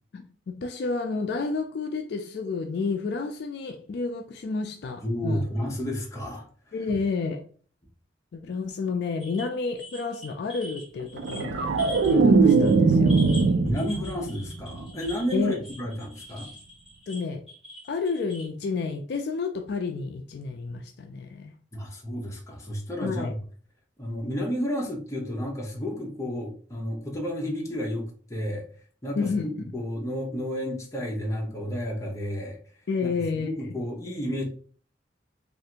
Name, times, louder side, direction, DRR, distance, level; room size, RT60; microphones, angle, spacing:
voice 1, 0.1-5.4 6.7-7.4 8.3-11.7 12.1-13.2 15.3-15.6 17.1-17.4 17.9-21.5 23.0-23.3 29.2-29.5 32.9-33.7, left 4 dB, 60° left, 0.3 m, -30 dB
voice 2, 5.0-6.5 13.6-16.5 21.7-23.4 24.0-28.7 29.0-32.6 33.0-34.4, equal, 15° left, 0.7 m, -31 dB
sound 1, 9.2-12.2 12.4-12.8 13.1-18.5, left 1 dB, 5° right, 1.3 m, -44 dB
sound 2, 11.2-14.4 14.7-15.1, right 4 dB, 65° right, 0.4 m, -20 dB
3.2 x 2.5 x 2.8 m
head